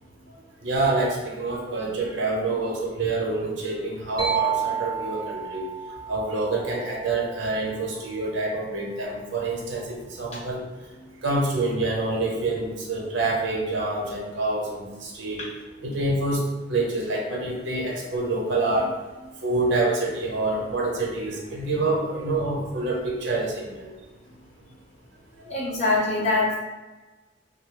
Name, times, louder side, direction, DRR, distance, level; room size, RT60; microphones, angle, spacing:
voice 1, 0.6-5.6 6.1-10.6 11.2-15.4 15.8-16.4 16.7-18.9 19.4-23.9, right 2 dB, 75° right, -2 dB, 0.8 m, -27 dB
sound 1, 4.2-7.9, right 8 dB, 25° right, 0.7 m, -31 dB
voice 2, 25.5-26.5, left 2 dB, 35° left, -7 dB, 0.7 m, -23 dB
2.7 x 2.1 x 3.6 m, 1.2 s
head